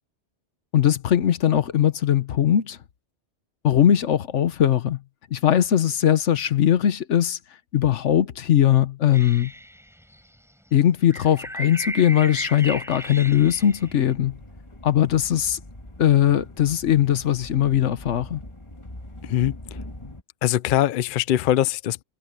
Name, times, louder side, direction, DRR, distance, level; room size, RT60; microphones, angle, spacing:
voice 1, 0.7-2.8 3.6-5.0 5.3-7.4 7.7-9.5 10.7-14.4 14.8-15.6 16.0-18.4, left 10 dB, 80° left, 1.2 m, -20 dB
sound 1, 9.1-10.3 11.1-14.1, equal, ahead, 8.0 m, -35 dB
sound 2, 13.2-20.2, left 1 dB, 25° left, 2.0 m, -42 dB
voice 2, 19.2-19.8 20.4-22.0, left 12 dB, 60° left, 0.6 m, -22 dB
omnidirectional pair, 1.2 m